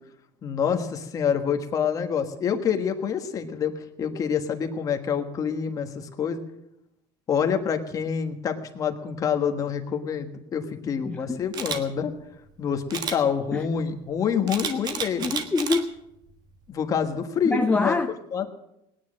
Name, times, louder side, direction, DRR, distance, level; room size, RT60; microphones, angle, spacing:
voice 1, 0.4-3.7 4.0-6.4 7.3-12.1 12.6-15.3 16.7-17.9 18.3-18.4, left 7 dB, 30° left, 5 dB, 1.4 m, -27 dB
voice 2, 11.0-11.4 13.5-13.7 15.2-16.0 17.4-18.1, left 3 dB, 10° left, 5 dB, 0.5 m, -25 dB
Camera, 11.5-11.8 12.9-13.2 14.5-15.8 16.3-16.5, right 6 dB, 35° right, 1.4 m, -30 dB
18.5 x 9.8 x 6.4 m, 0.84 s
cardioid pair, 150°, 12 cm